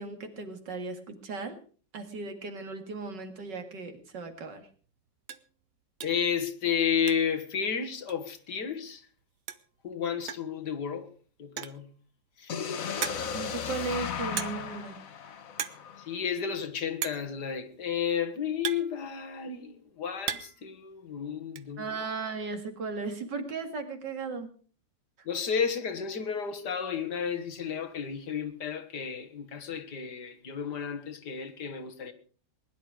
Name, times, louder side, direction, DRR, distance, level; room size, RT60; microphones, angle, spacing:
voice 1, 0.0-1.6 1.9-4.7 13.3-15.0 21.8-24.5, right 4 dB, 75° right, 2.7 m, -36 dB
sound 1, 4.3-4.5 4.8-4.9 5.2-5.5 6.0-6.3 6.6-7.5 7.7-7.8 8.1-8.2 9.2-9.3 9.5-9.8 10.3-10.6 11.4-11.9 12.4-12.5 13.0-13.5 14.4-14.8 15.0-15.3 15.5-15.9 16.1-16.2 17.0-17.3 18.1-19.5 19.9-20.7 20.9-21.6, right 9 dB, 55° right, 1.1 m, -37 dB
voice 2, 6.0-9.1 9.8-11.1 11.4-11.9 12.4-12.5 16.0-22.0 25.3-32.1, left 7 dB, 70° left, 2.0 m, -32 dB
sound 2, 12.5-16.4, left 7 dB, 55° left, 1.4 m, -36 dB
20.5 x 11.0 x 4.9 m
omnidirectional pair, 1.9 m